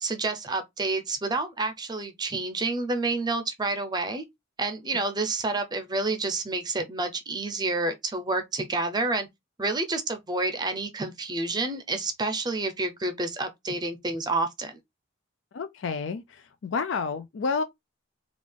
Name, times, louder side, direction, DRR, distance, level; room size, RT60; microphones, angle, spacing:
voice 1, 0.0-4.2 4.6-9.3 9.6-14.8, right 3 dB, 20° right, 0.6 m, -29 dB
voice 2, 15.5-17.6, left 5 dB, 65° left, 0.4 m, -30 dB
3.6 x 2.4 x 3.3 m
head